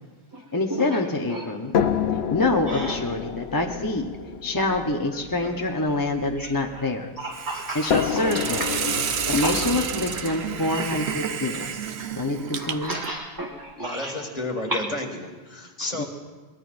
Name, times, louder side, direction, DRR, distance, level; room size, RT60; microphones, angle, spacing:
voice 1, 0.5-1.7 2.3-4.1 4.4-7.1 7.7-8.9 9.3-11.9 12.2-13.0 16.0-16.1, left 2 dB, 20° left, 1 dB, 0.8 m, -26 dB
sound 1, 1.7-7.0 7.9-11.9 12.8-12.9 13.4-13.5, left 7 dB, 75° left, 0.9 m, -29 dB
voice 2, 7.2-8.2 9.3-9.5 12.6-14.1 14.7-14.8, right 1 dB, 20° right, -1 dB, 1.4 m, -32 dB
Hiss, 7.3-13.1, right 7 dB, 80° right, 1.0 m, -30 dB
voice 3, 13.8-16.1, left 2 dB, 40° left, 2 dB, 1.8 m, -31 dB
23.0 x 20.0 x 2.5 m, 1.3 s
omnidirectional pair, 1.1 m